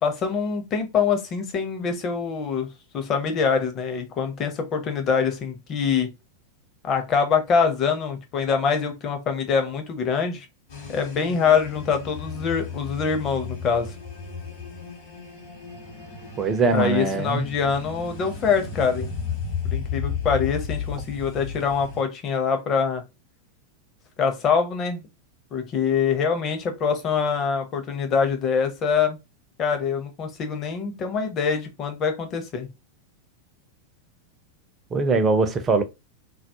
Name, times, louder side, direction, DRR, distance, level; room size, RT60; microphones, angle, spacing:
voice 1, 0.0-2.7 2.9-6.1 6.8-10.5 10.9-13.9 16.7-19.1 19.6-23.0 24.2-25.0 25.5-29.2 29.6-32.7, left 6 dB, 30° left, 0.6 m, -24 dB
sound 1, 10.7-22.0, left 6 dB, 55° left, 1.0 m, -34 dB
voice 2, 16.4-17.5 34.9-35.8, right 4 dB, 25° right, 0.5 m, -21 dB
2.3 x 2.0 x 2.8 m
figure-of-eight pair, 90°, 0 cm